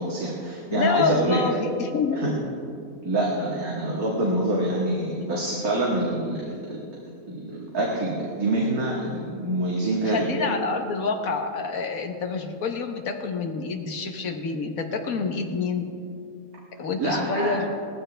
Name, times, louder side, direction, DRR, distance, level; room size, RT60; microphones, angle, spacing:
voice 1, 0.0-1.4 2.2-2.3 3.0-6.8 7.3-10.5 17.0-17.6, right 1 dB, 80° right, -4 dB, 2.2 m, -26 dB
voice 2, 0.7-2.2 10.1-15.9 16.8-17.6, left 4 dB, 70° left, 5 dB, 1.6 m, -27 dB
18.0 x 14.5 x 3.4 m, 2.4 s
omnidirectional pair, 1.5 m